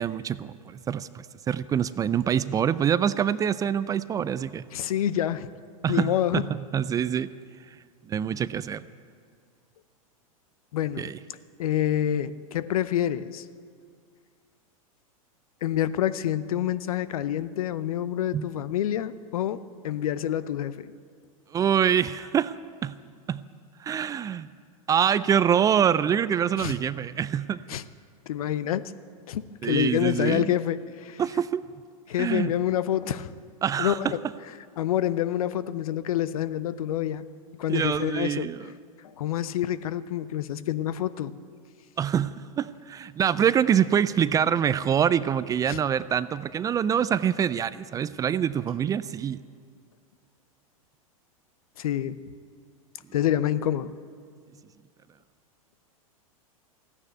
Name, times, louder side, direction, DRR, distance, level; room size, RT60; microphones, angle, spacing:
voice 1, 0.0-4.6 5.8-7.3 8.1-8.8 11.0-11.2 18.3-18.5 21.5-22.5 22.8-23.0 23.3-23.4 23.8-24.5 24.9-27.8 29.6-30.5 31.2-31.7 32.2-32.5 33.6-34.1 37.7-38.7 42.0-49.4, right 8 dB, 20° right, 16 dB, 0.3 m, -25 dB
voice 2, 4.7-5.5 5.9-6.4 10.7-11.1 11.6-13.4 15.6-20.9 26.6-26.7 27.7-27.8 28.3-28.9 29.3-31.2 32.1-33.3 33.8-34.1 34.8-37.2 37.6-38.5 39.2-41.3 45.7-45.8 51.8-52.2 53.1-53.9, left 11 dB, 75° left, 16 dB, 0.7 m, -27 dB
14.5 x 9.7 x 9.2 m, 2.1 s
hypercardioid pair, 110°, 19 cm